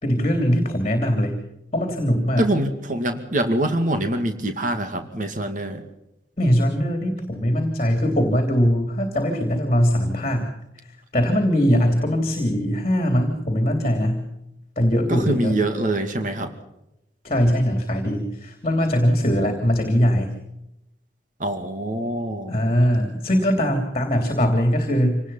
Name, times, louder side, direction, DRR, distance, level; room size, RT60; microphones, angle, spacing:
voice 1, 0.0-1.4 1.7-2.4 6.4-10.5 11.1-14.2 14.7-15.6 17.2-20.3 22.5-25.2, equal, 35° left, 5 dB, 3.3 m, -21 dB
voice 2, 2.4-5.8 15.1-16.5 21.4-22.5, right 1 dB, 45° right, 6 dB, 2.3 m, -24 dB
26.5 x 19.5 x 5.7 m, 0.88 s
head